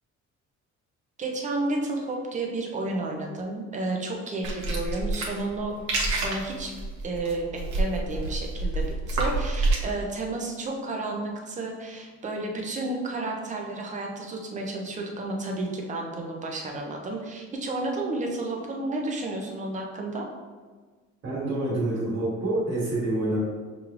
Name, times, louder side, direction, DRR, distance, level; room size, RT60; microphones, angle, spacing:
voice 1, 1.2-5.7 6.1-6.7 7.0-8.8 9.1-20.3, right 2 dB, 25° right, 1 dB, 0.5 m, -31 dB
sound 1, 4.4-9.8, right 2 dB, 90° right, 1.0 m, -28 dB
voice 2, 21.2-23.4, right 2 dB, 40° right, -7 dB, 1.3 m, -27 dB
6.1 x 3.1 x 2.4 m, 1.4 s
cardioid pair, 175°, 29 cm